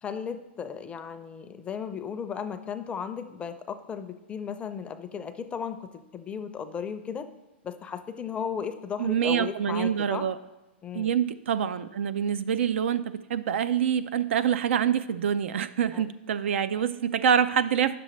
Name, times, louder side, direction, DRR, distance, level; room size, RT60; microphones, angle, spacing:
voice 1, 0.0-7.3 7.6-10.2 10.8-11.1 15.9-16.0, left 7 dB, 15° left, 9 dB, 0.5 m, -35 dB
voice 2, 9.0-10.4 10.9-13.0 13.3-18.0, right 8 dB, 75° right, 12 dB, 0.4 m, -26 dB
9.7 x 6.8 x 3.1 m, 1.1 s
hypercardioid pair, 130°, 7 cm